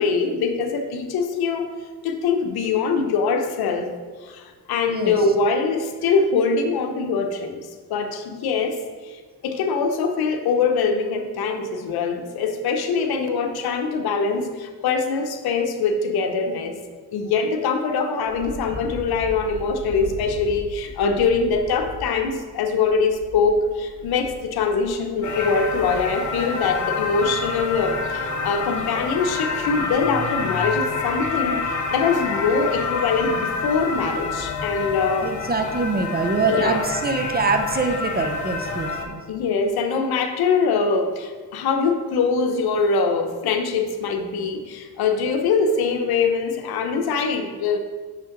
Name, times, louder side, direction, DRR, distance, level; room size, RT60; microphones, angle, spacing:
voice 1, 0.0-1.7 2.0-3.9 4.2-16.8 17.1-35.3 36.5-36.8 39.3-47.8, left 4 dB, 75° left, 6 dB, 0.8 m, -23 dB
voice 2, 4.9-5.2 35.2-39.2, right 4 dB, 25° right, 5 dB, 0.7 m, -24 dB
Wind, 18.2-26.4, equal, 55° right, 1.4 m, -38 dB
sound 1, 25.2-39.1, left 4 dB, 50° left, 1.0 m, -27 dB
6.0 x 5.5 x 3.9 m, 1.5 s
cardioid pair, 85°, 38 cm